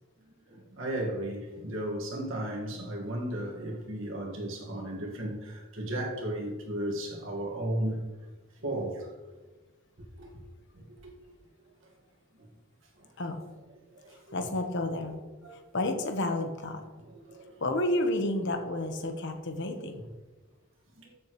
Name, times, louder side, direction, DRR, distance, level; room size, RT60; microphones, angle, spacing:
voice 1, 0.5-8.0 8.6-9.1 10.2-10.3 11.0-11.1 14.1-14.4 15.4-15.6 17.1-17.5 21.0-21.1, right 1 dB, 65° right, 1.8 m, -35 dB
voice 2, 14.3-15.2 15.7-16.8 17.6-19.9, left 1 dB, 60° left, 1.1 m, -30 dB
13.5 x 7.2 x 3.2 m
head